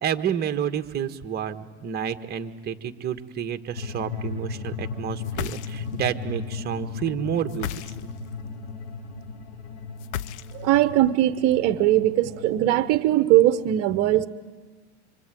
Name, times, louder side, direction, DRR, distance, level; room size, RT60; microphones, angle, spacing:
voice 1, 0.0-7.7, right 8 dB, 30° right, 8 dB, 1.4 m, -29 dB
sound 1, 3.8-13.0, left 5 dB, 60° left, 3.9 m, -36 dB
sound 2, 5.2-6.1 7.5-8.3 10.0-10.8, left 11 dB, 80° left, 0.9 m, -34 dB
voice 2, 10.5-14.3, right 13 dB, 45° right, 12 dB, 1.0 m, -20 dB
25.5 x 25.0 x 9.2 m, 1.4 s
supercardioid pair, 125°, 34 cm